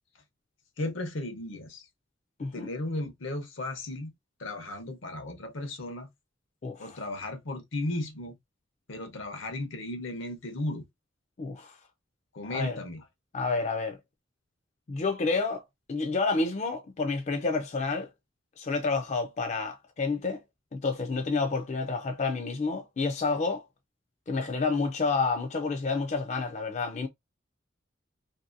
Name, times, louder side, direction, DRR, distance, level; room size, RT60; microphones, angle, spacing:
voice 1, 0.8-1.8 2.5-4.1 4.4-6.1 6.8-8.4 8.9-10.8 12.3-13.0, left 1 dB, 75° left, 0.8 m, -35 dB
voice 2, 6.6-7.0 11.4-11.8 12.5-12.8 13.3-14.0 14.9-18.1 18.6-20.4 20.7-23.6 24.3-27.1, left 4 dB, 35° left, 0.4 m, -29 dB
2.7 x 2.6 x 2.5 m
head